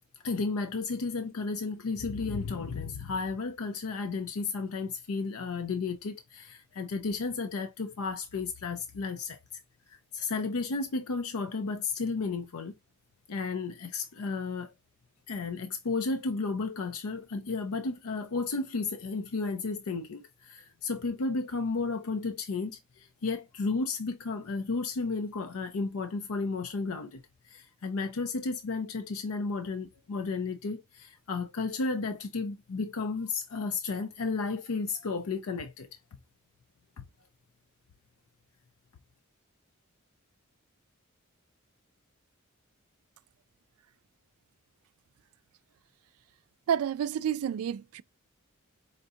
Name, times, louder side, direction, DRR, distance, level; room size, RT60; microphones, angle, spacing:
voice 1, 0.2-9.6 9.9-12.7 13.3-14.7 15.3-35.9 37.0-37.1, left 4 dB, 85° left, 0.5 m, -33 dB
voice 2, 46.7-48.0, right 8 dB, 80° right, 0.3 m, -29 dB
5.1 x 2.7 x 2.4 m
head